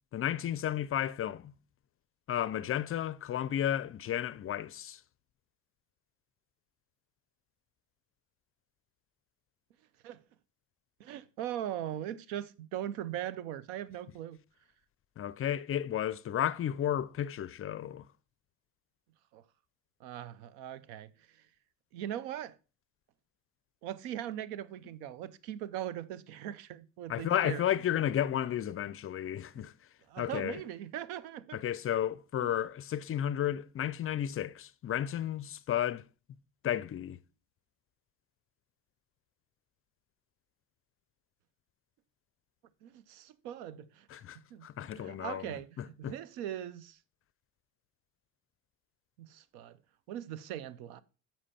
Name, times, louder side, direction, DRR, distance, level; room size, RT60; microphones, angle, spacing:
voice 1, 0.1-1.5 2.3-5.0 15.2-18.0 27.1-29.7 30.2-30.6 31.5-36.0 36.6-37.2 44.1-46.1, left 10 dB, 35° left, 0.4 m, -33 dB
voice 2, 11.0-14.4 19.3-19.4 20.0-21.1 21.9-22.6 23.8-27.6 27.9-28.0 30.1-31.6 32.4-32.5 42.8-44.2 44.5-44.7 44.9-47.0 49.2-49.8 50.1-51.0, right 11 dB, 75° right, 0.7 m, -40 dB
7.4 x 5.6 x 4.2 m
supercardioid pair, 75°, 40 cm